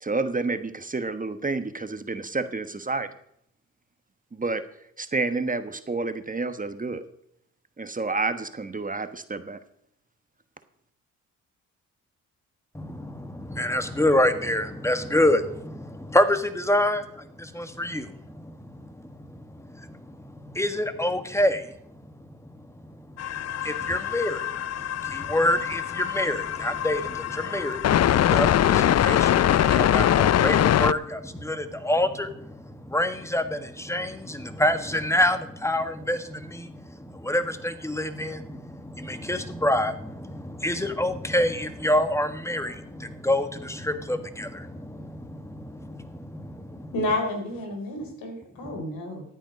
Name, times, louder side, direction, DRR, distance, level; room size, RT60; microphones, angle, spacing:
voice 1, 0.0-3.1 4.3-4.6 5.0-7.0 7.8-9.6, right 3 dB, 25° right, 10 dB, 1.3 m, -29 dB
voice 2, 12.7-21.7 22.2-22.3 22.8-22.9 23.3-24.5 25.0-46.9 48.6-48.8, left 1 dB, 10° left, 9 dB, 1.6 m, -27 dB
sound 1, 23.2-30.9, left 11 dB, 50° left, 0.5 m, -23 dB
voice 3, 46.9-49.2, left 1 dB, 80° left, 4 dB, 3.8 m, -30 dB
13.5 x 9.2 x 5.2 m, 0.70 s
supercardioid pair, 60°, 34 cm